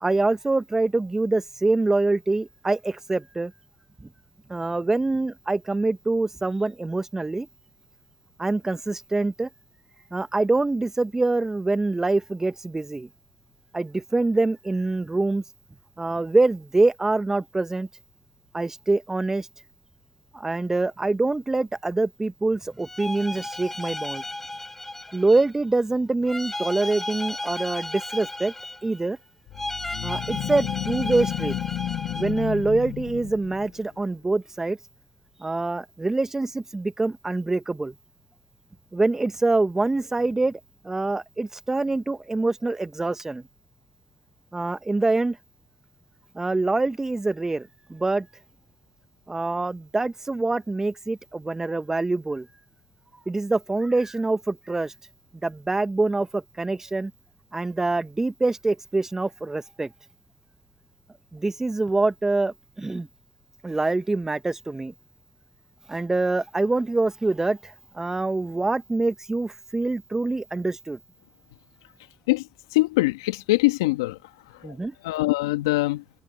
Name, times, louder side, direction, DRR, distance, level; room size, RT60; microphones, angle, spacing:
voice 1, 0.0-3.5 4.0-4.1 4.5-7.5 8.4-9.5 10.1-13.1 13.7-15.4 16.0-17.9 18.5-19.5 20.3-24.2 25.1-28.5 28.8-29.2 30.0-31.5 32.1-34.8 35.4-37.9 38.9-40.6 40.8-43.4 44.5-45.4 46.3-48.3 49.3-52.5 53.3-54.9 55.4-57.1 57.5-59.9 61.3-63.1 63.6-64.9 65.9-71.0 74.6-74.9, right 2 dB, 20° right, 1.6 m, -25 dB
sound 1, 22.8-25.6 26.3-29.1 29.5-32.5, left 2 dB, 10° left, 5.1 m, -35 dB
sound 2, 29.5-33.9, left 13 dB, 65° left, 1.6 m, -32 dB
voice 2, 72.7-74.2 74.6-74.7 75.0-76.0, left 20 dB, 85° left, 1.9 m, -22 dB
hypercardioid pair, 55°, 2 cm